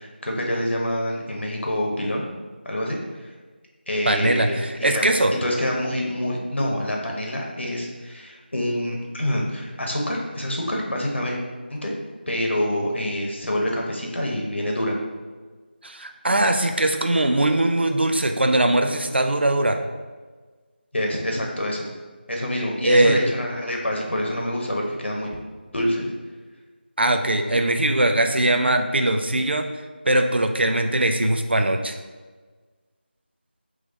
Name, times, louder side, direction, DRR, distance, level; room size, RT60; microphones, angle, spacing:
voice 1, 0.0-2.2 2.6-3.3 3.9-11.4 11.7-11.9 12.3-15.0 20.9-21.9 22.3-25.3 25.7-26.1, left 1 dB, 80° left, -1 dB, 1.2 m, -26 dB
voice 2, 4.1-5.3 15.8-19.8 22.8-23.2 27.0-29.7 30.0-32.0, right 1 dB, 70° right, 6 dB, 0.5 m, -20 dB
3.9 x 3.1 x 3.8 m, 1.4 s
figure-of-eight pair, 180°, 6 cm